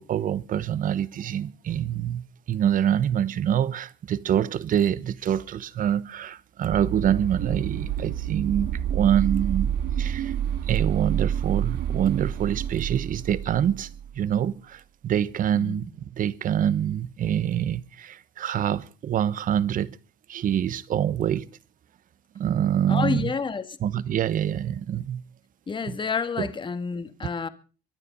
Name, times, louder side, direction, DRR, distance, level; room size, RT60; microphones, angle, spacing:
voice 1, 0.0-9.7 10.0-10.3 10.7-13.9 14.1-20.0 20.3-21.5 22.3-23.3 23.8-25.2 25.9-26.0 26.4-26.5, right 9 dB, 55° right, 1.1 m, -25 dB
sound 1, 6.7-14.1, right 9 dB, 80° right, 5.0 m, -28 dB
voice 2, 22.9-23.7 25.7-27.5, left 5 dB, 30° left, 1.9 m, -29 dB
23.5 x 10.0 x 5.5 m
cardioid pair, 110°, 17 cm